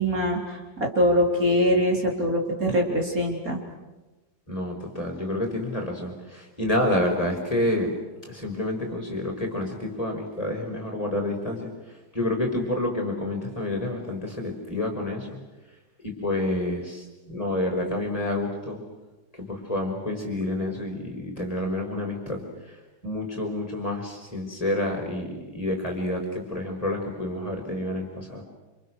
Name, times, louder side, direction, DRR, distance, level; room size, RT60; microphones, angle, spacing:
voice 1, 0.0-3.6, equal, 55° right, 0 dB, 4.4 m, -23 dB
voice 2, 4.5-8.0 8.3-11.7 12.1-15.3 16.0-18.8 19.4-22.4 23.0-28.4, left 1 dB, 20° left, 0 dB, 5.6 m, -28 dB
29.0 x 27.5 x 6.6 m, 1.1 s
omnidirectional pair, 1.8 m